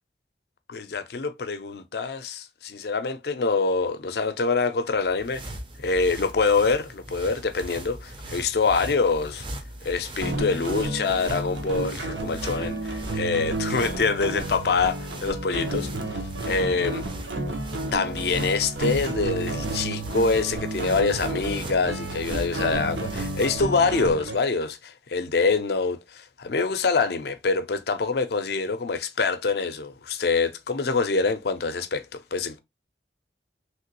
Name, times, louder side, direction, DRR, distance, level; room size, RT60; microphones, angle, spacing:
voice 1, 0.7-5.4 5.8-9.4 9.8-17.1 17.9-32.6, left 4 dB, 60° left, 0.5 m, -25 dB
sound 1, 4.9-23.7, right 1 dB, 30° right, 0.4 m, -39 dB
sound 2, 10.2-24.3, right 2 dB, 85° right, 0.8 m, -31 dB
3.1 x 2.9 x 2.9 m
head